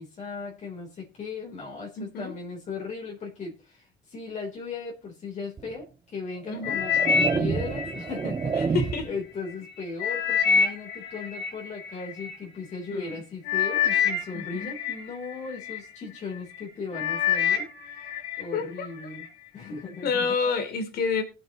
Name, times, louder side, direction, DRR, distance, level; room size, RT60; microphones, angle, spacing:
voice 1, 0.0-8.8 9.0-18.1 18.4-19.3 19.5-20.3, left 4 dB, 45° left, 3.7 m, -37 dB
voice 2, 2.0-2.3 6.5-6.8 8.7-9.1 12.9-13.1 14.3-14.7 18.5-18.9 20.0-21.2, left 5 dB, 65° left, 3.2 m, -28 dB
sound 1, 5.6-5.7 6.5-9.2, right 5 dB, 25° right, 0.7 m, -29 dB
sound 2, 6.6-9.0 9.5-12.3 13.0-13.2 13.5-15.8 16.4-16.6 16.9-18.5 18.8-19.3 19.9-20.0, left 7 dB, 80° left, 3.8 m, -27 dB
20.5 x 7.9 x 3.0 m
cardioid pair, 110°, 17 cm